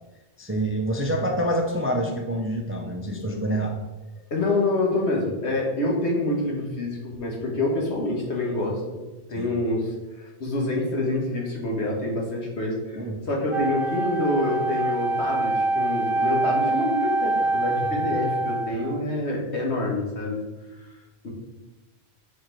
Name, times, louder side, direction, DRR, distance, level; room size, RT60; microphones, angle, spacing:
voice 1, 0.4-3.7 9.4-9.5 12.9-13.2, right 1 dB, 20° right, 2 dB, 0.3 m, -26 dB
voice 2, 4.3-9.0 9.3-9.9 10.2-13.0 13.3-20.4 21.2-21.3, left 2 dB, 85° left, -1 dB, 1.6 m, -26 dB
Wind instrument woodwind instrument, 13.5-19.0, right 2 dB, 60° right, 0.9 m, -25 dB
4.8 x 4.6 x 4.4 m, 1.1 s
omnidirectional pair, 1.1 m